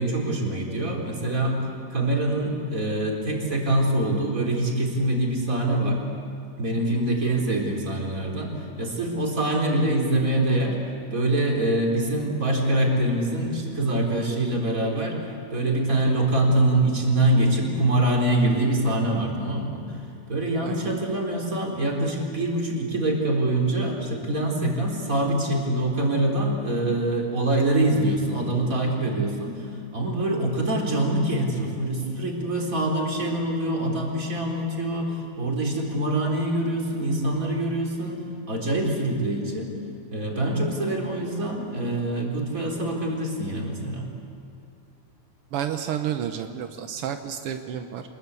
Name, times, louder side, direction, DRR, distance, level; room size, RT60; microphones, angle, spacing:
voice 1, 0.0-1.6 1.9-6.0 6.6-10.8 11.1-20.0 20.3-39.7 40.1-44.1, right 1 dB, 25° right, -1 dB, 4.0 m, -24 dB
voice 2, 45.5-48.0, right 9 dB, 75° right, 7 dB, 1.3 m, -30 dB
26.5 x 21.0 x 8.3 m, 2.5 s
omnidirectional pair, 3.7 m